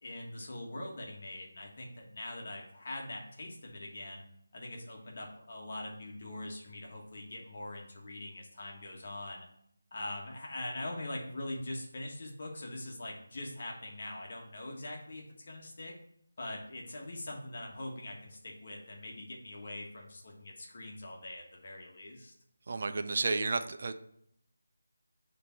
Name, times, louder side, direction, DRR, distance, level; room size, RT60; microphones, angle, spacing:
voice 1, 0.0-4.2 4.5-9.4 9.9-15.9 16.4-22.3, left 1 dB, 45° left, 0 dB, 1.3 m, -42 dB
voice 2, 22.7-23.9, right 3 dB, 45° right, 9 dB, 0.5 m, -31 dB
6.7 x 3.3 x 4.4 m, 0.71 s
figure-of-eight pair, 170°, 0 cm